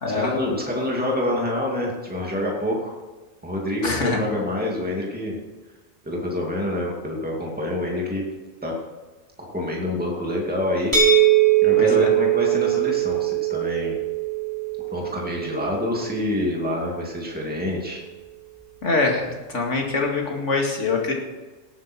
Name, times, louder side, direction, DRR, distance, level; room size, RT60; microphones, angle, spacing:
voice 1, 0.1-2.9 3.4-5.4 6.0-8.2 8.6-8.7 9.4-10.9 11.6-14.0 14.9-18.0, left 1 dB, 5° right, -2 dB, 2.4 m, -27 dB
voice 2, 3.8-4.2 11.8-12.1 18.8-21.1, left 3 dB, 65° left, 1 dB, 2.5 m, -24 dB
sound 1, 10.9-16.7, right 11 dB, 15° left, 2.3 m, -21 dB
17.5 x 9.6 x 4.5 m, 1.3 s
omnidirectional pair, 1.4 m